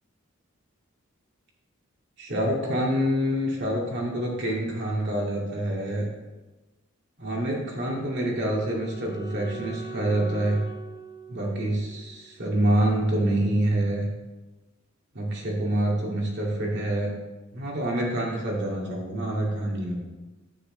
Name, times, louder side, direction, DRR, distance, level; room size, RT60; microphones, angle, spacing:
voice 1, 2.2-6.1 7.2-10.6 11.3-14.1 15.1-17.1 17.5-20.0, right 1 dB, 60° right, -2 dB, 2.4 m, -26 dB
Wind instrument woodwind instrument, 7.7-12.8, right 4 dB, 35° left, 1.2 m, -43 dB
9.8 x 8.6 x 3.3 m, 1.1 s
head